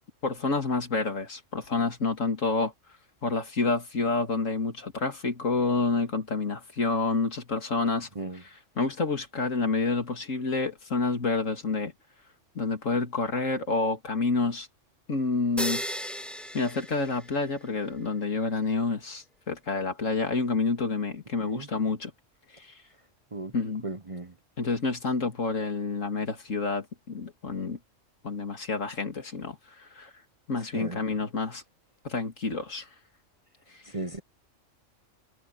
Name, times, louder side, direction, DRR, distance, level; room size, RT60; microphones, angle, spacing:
voice 1, 0.2-2.7 3.2-8.1 8.4-11.9 12.5-14.7 15.1-15.8 16.5-22.1 22.5-22.7 23.5-23.8 24.6-27.8 28.2-30.1 30.5-31.6 32.0-32.9, left 4 dB, 75° left, 2.8 m, -28 dB
sound 1, 15.6-17.7, equal, ahead, 1.3 m, -35 dB
voice 2, 23.8-24.3 30.7-31.0 33.9-34.2, right 3 dB, 30° right, 0.8 m, -36 dB
omnidirectional pair, 1.3 m